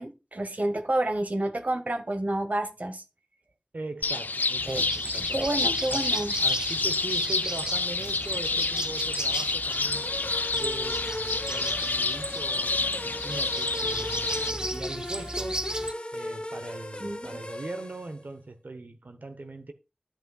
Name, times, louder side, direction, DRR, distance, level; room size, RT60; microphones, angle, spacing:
voice 1, 0.0-3.0 4.7-4.8 5.3-6.4 17.0-17.3, right 1 dB, 60° right, 1.1 m, -29 dB
voice 2, 3.7-5.5 5.9-6.1 6.4-10.1 10.5-15.7 16.1-19.7, right 2 dB, 85° right, 0.9 m, -40 dB
sound 1, 4.0-14.5, left 3 dB, 85° left, 0.4 m, -29 dB
sound 2, 4.6-15.9, right 1 dB, 25° right, 0.6 m, -36 dB
sound 3, 9.9-18.2, left 1 dB, 40° left, 0.9 m, -37 dB
11.5 x 8.2 x 2.3 m
wide cardioid pair, 45°, 3 cm